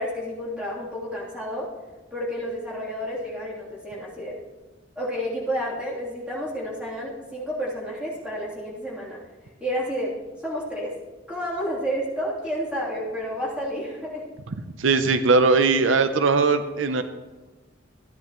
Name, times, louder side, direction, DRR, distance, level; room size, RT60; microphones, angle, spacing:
voice 1, 0.0-1.7 2.1-4.4 4.9-9.2 9.6-10.1 10.4-10.9 11.3-14.3, equal, 5° right, -7 dB, 3.1 m, -30 dB
voice 2, 14.8-17.0, right 4 dB, 80° right, 10 dB, 0.6 m, -19 dB
14.5 x 10.5 x 3.0 m, 1.2 s
head